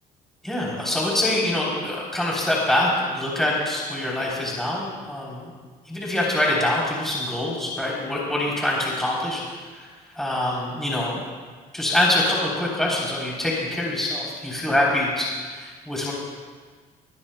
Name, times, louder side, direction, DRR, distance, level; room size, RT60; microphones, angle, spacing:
voice 1, 0.4-5.5 5.9-9.4 9.7-9.9 10.2-11.2 11.7-16.1, left 1 dB, ahead, -5 dB, 3.4 m, -24 dB
23.0 x 14.5 x 2.2 m, 1.5 s
cardioid pair, 110°, 17 cm